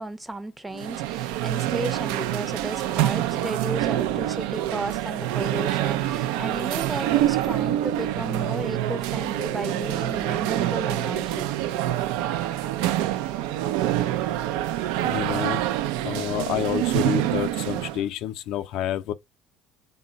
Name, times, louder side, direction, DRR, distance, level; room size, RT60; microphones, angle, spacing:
voice 1, 0.0-11.5, right 1 dB, 10° right, 0.5 m, -34 dB
sound 1, 0.7-18.0, right 13 dB, 90° right, 0.3 m, -26 dB
voice 2, 15.0-15.6 16.0-19.1, left 11 dB, 70° left, 0.4 m, -28 dB
3.8 x 2.1 x 3.9 m
cardioid pair, 115°, 0 cm